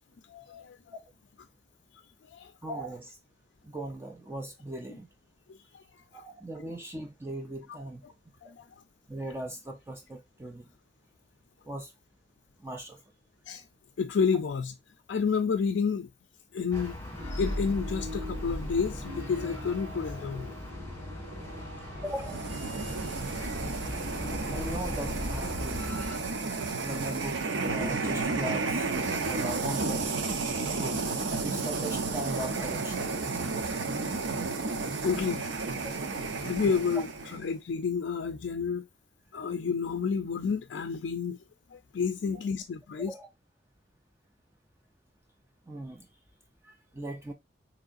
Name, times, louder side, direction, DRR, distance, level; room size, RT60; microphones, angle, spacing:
voice 1, 0.3-0.9 2.2-2.5 4.9-5.0 5.5-6.2 7.7-7.8 8.4-8.7 13.5-13.6 14.0-14.7 15.1-16.1 16.5-17.0 17.3-20.5 35.0-35.4 36.2-38.9 39.3-41.4 41.7-43.1, left 5 dB, 70° left, 0.4 m, -30 dB
voice 2, 2.6-3.2 3.6-5.1 6.1-8.0 8.4-8.5 9.1-10.7 11.7-11.9 12.6-13.0 22.0-22.5 22.8-23.0 23.7-23.9 24.5-25.9 26.8-27.4 27.7-30.1 30.7-31.0 31.4-33.1 35.8-36.1 43.0-43.3 45.7-46.1 46.6-47.3, right 1 dB, 15° right, 0.5 m, -39 dB
sound 1, 16.7-26.2, left 1 dB, 15° left, 1.5 m, -41 dB
sound 2, 17.1-26.9, equal, 70° right, 1.8 m, -40 dB
sound 3, 22.1-37.5, right 3 dB, 90° right, 0.7 m, -32 dB
4.7 x 3.1 x 2.5 m
head